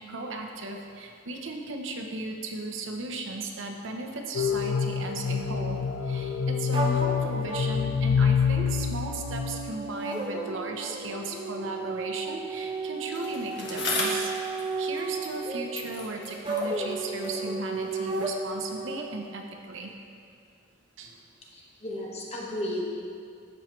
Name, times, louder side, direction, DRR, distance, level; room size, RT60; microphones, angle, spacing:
voice 1, 0.0-19.9 21.0-21.2, right 2 dB, 75° right, 3 dB, 0.7 m, -36 dB
sound 1, 4.3-9.7, left 6 dB, 75° left, 0.4 m, -27 dB
sound 2, 6.7-19.0, right 2 dB, 25° right, 0.6 m, -34 dB
Bicycle, 13.1-15.5 15.7-18.1 18.9-19.0, left 2 dB, 60° left, 1.3 m, -36 dB
voice 2, 21.5-22.9, left 1 dB, 30° left, -3 dB, 1.1 m, -34 dB
13.0 x 4.4 x 3.1 m, 2.3 s
head